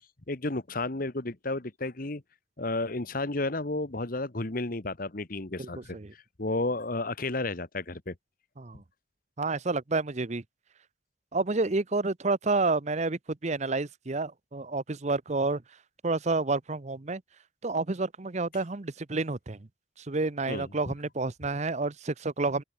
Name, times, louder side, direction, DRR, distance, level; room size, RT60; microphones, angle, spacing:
voice 1, 0.3-2.2 2.6-8.1 20.5-20.7, left 2 dB, 45° left, 1.3 m, -32 dB
voice 2, 5.6-6.1 8.6-8.8 9.4-10.4 11.3-15.6 16.0-17.2 17.6-19.6 20.0-22.6, right 3 dB, 35° right, 0.8 m, -29 dB
open air
head